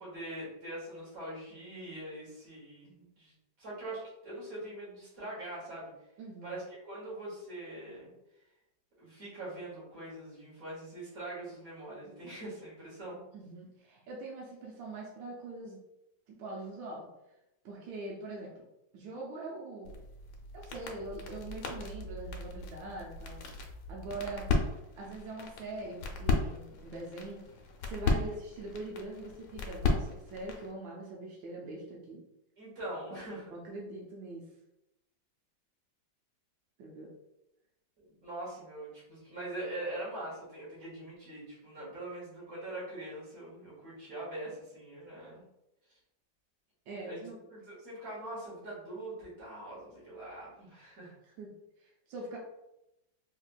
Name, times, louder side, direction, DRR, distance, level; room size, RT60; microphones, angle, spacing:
voice 1, 0.0-5.9 6.4-8.1 9.0-13.2 32.6-33.6 38.0-45.4 47.1-51.1, right 1 dB, 50° right, -7 dB, 1.9 m, -43 dB
voice 2, 6.2-6.5 13.3-15.8 16.3-17.1 17.6-18.5 18.9-20.0 20.5-23.4 23.9-24.5 25.0-27.4 27.8-32.2 33.1-33.2 33.5-34.4 36.8-37.1 46.9-47.4 51.2-51.5 51.8-52.4, right 2 dB, 85° right, -2 dB, 1.4 m, -43 dB
sound 1, 19.8-30.7, left 3 dB, 80° left, 1.3 m, -35 dB
4.1 x 2.8 x 2.2 m, 0.89 s
omnidirectional pair, 2.0 m